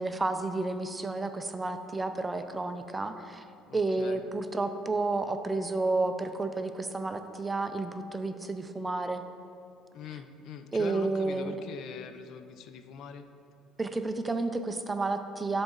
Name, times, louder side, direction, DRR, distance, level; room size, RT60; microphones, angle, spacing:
voice 1, 0.0-3.4 3.7-9.2 10.7-11.5 13.8-15.6, right 3 dB, 15° right, 8 dB, 0.4 m, -31 dB
voice 2, 3.7-4.2 9.9-13.3, left 7 dB, 60° left, 9 dB, 0.4 m, -43 dB
11.5 x 4.0 x 3.8 m, 2.5 s
cardioid pair, 120°, 0 cm